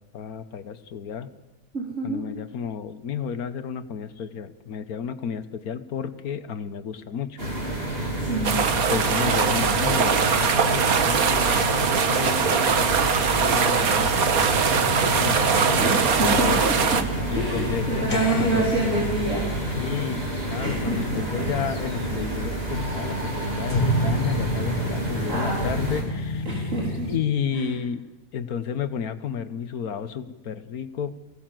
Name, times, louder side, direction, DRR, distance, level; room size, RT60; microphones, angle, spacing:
voice 1, 0.1-1.3 2.0-7.5 8.7-16.6 17.2-18.7 19.8-26.7 27.1-28.0 28.3-31.2, left 7 dB, 85° left, 11 dB, 1.6 m, -32 dB
voice 2, 1.7-2.2 8.2-8.6 15.8-16.7 17.3-19.5 20.6-21.2 25.3-25.8 26.5-27.1 27.5-27.6, right 2 dB, 55° right, -4 dB, 4.2 m, -27 dB
sound 1, 7.4-26.0, right 1 dB, 40° right, 4.2 m, -29 dB
sound 2, 8.4-17.0, right 6 dB, 80° right, 1.7 m, -22 dB
sound 3, 14.4-27.2, equal, 30° left, 2.9 m, -32 dB
23.5 x 16.5 x 7.6 m, 1.1 s
omnidirectional pair, 1.5 m